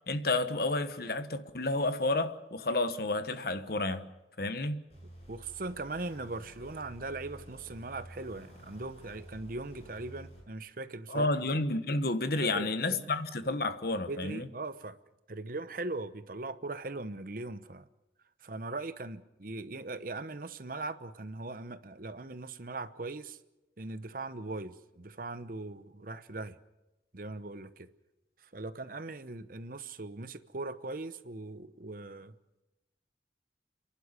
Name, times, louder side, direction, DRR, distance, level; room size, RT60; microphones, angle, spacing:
voice 1, 0.0-4.1 4.4-4.8 11.1-14.5, left 2 dB, 55° left, 1.2 m, -31 dB
sound 1, 4.9-10.4, equal, 35° left, 7.9 m, -51 dB
voice 2, 5.3-11.3 12.4-13.1 14.1-15.0 15.3-17.9 18.4-23.4 23.8-26.6 27.1-27.9 28.5-32.3, right 2 dB, 50° right, 0.9 m, -40 dB
30.0 x 11.5 x 9.6 m
head